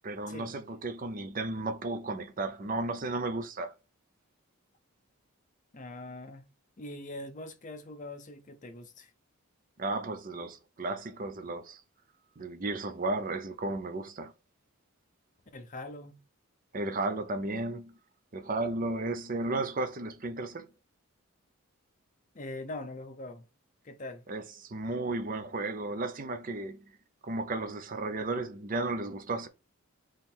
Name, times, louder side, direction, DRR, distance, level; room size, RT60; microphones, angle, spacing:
voice 1, 0.0-3.7 9.8-11.8 12.4-14.3 16.7-17.9 18.3-20.7 24.3-26.9 27.2-29.5, right 2 dB, 40° right, 0.5 m, -34 dB
voice 2, 5.7-6.4 6.8-9.1 15.5-16.2 22.3-23.4 23.8-24.2, left 2 dB, 35° left, 0.6 m, -42 dB
3.7 x 3.1 x 4.3 m
head